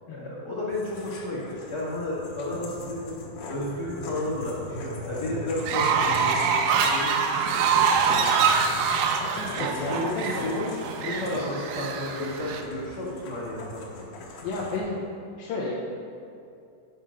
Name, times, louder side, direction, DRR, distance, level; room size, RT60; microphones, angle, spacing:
voice 1, 0.1-3.1 3.5-8.7 9.5-10.1 10.4-13.8, left 1 dB, 45° left, -7 dB, 1.4 m, -33 dB
sound 1, 0.7-14.8, left 1 dB, 70° left, 2.6 m, -40 dB
Fowl, 5.6-12.6, right 6 dB, 80° right, 2.2 m, -25 dB
voice 2, 9.3-10.5 11.0-11.6 14.4-15.0 15.4-15.7, left 3 dB, 85° left, -6 dB, 2.8 m, -33 dB
10.0 x 5.8 x 5.2 m, 2.5 s
omnidirectional pair, 4.2 m